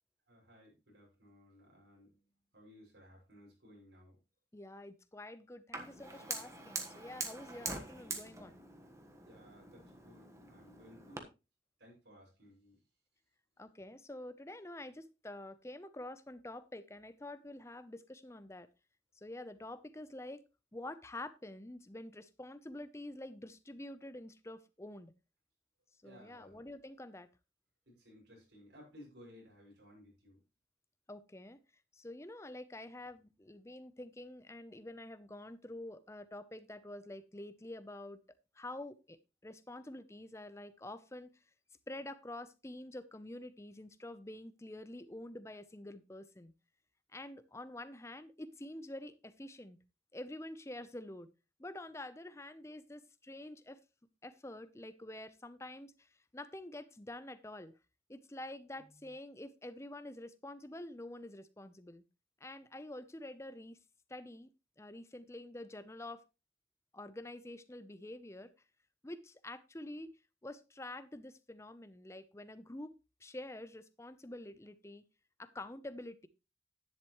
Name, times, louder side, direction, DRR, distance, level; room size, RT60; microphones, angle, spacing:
voice 1, 0.3-4.2 9.2-11.3 11.8-12.8 26.0-26.6 27.9-30.4, equal, 90° right, -1 dB, 6.5 m, -59 dB
voice 2, 4.5-8.6 13.6-18.7 19.2-20.4 20.7-25.1 26.0-27.3 31.1-31.6 31.9-38.2 38.6-39.2 39.4-41.3 41.9-46.5 47.1-49.8 50.1-51.3 51.6-53.8 54.2-55.9 56.3-57.7 58.1-62.0 62.4-63.8 64.1-64.5 64.8-66.2 66.9-68.5 69.0-70.2 70.4-73.0 73.2-75.0 75.4-76.3, left 1 dB, 15° left, 14 dB, 0.7 m, -47 dB
Fire, 5.7-11.2, right 3 dB, 15° right, 1.3 m, -44 dB
10.5 x 10.5 x 3.1 m, 0.27 s
head